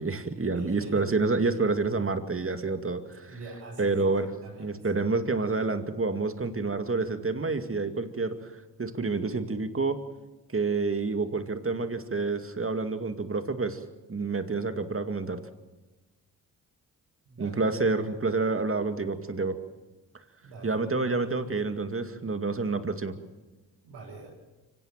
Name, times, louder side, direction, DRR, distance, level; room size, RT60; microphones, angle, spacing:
voice 1, 0.0-3.3 3.8-4.3 4.6-10.0 10.5-13.8 14.1-15.4 17.4-19.6 20.6-23.1, right 3 dB, 35° right, 8 dB, 2.3 m, -28 dB
voice 2, 0.5-1.0 3.3-4.9 17.3-17.6 20.4-20.8 23.8-24.3, right 3 dB, 90° right, -7 dB, 7.6 m, -44 dB
25.0 x 17.0 x 7.5 m, 1.2 s
supercardioid pair, 50°, 40 cm